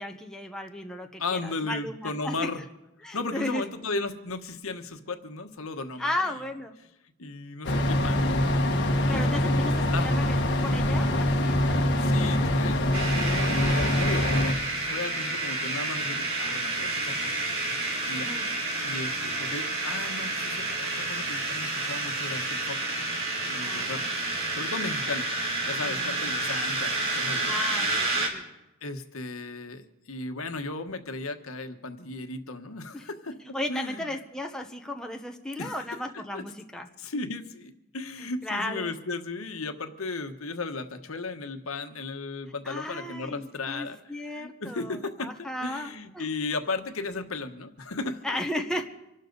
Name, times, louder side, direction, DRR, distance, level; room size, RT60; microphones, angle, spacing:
voice 1, 0.0-2.5 3.0-3.6 6.0-6.8 9.1-11.5 18.1-18.5 23.6-24.1 25.8-26.0 27.5-28.4 32.9-33.0 33.5-36.9 38.2-38.9 42.6-46.3 48.2-48.9, left 1 dB, 5° left, 2 dB, 1.1 m, -35 dB
voice 2, 1.2-2.6 3.1-6.1 7.2-8.6 9.1-9.5 9.9-10.1 12.0-12.8 13.3-14.3 14.8-17.5 18.0-18.3 18.8-22.8 23.5-24.0 24.5-25.3 25.7-27.5 28.8-33.4 33.7-34.1 35.6-36.0 36.3-36.4 37.0-48.4, left 3 dB, 80° left, 7 dB, 1.2 m, -35 dB
sound 1, 7.6-14.5, left 1 dB, 55° left, 1.5 m, -24 dB
sound 2, 12.9-28.3, right 2 dB, 70° right, 3.2 m, -30 dB
26.0 x 12.5 x 4.0 m, 0.93 s
head